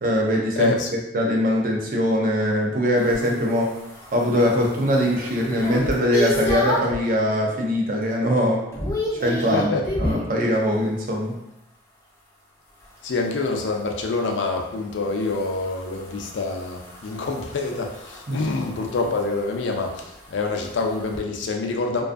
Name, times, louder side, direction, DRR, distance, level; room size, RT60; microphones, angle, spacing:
voice 1, 0.0-0.7 1.1-3.7 4.1-8.6 9.1-9.7 10.0-11.4 18.3-18.4, equal, 45° right, 0 dB, 0.4 m, -22 dB
voice 2, 0.5-0.9 9.5-9.9 13.0-22.0, left 3 dB, 75° left, 3 dB, 0.4 m, -26 dB
sound 1, 3.0-7.0 7.5-7.9 8.2-10.3 12.8-21.2, left 1 dB, 15° left, 0.4 m, -32 dB
2.5 x 2.3 x 2.4 m, 0.86 s
head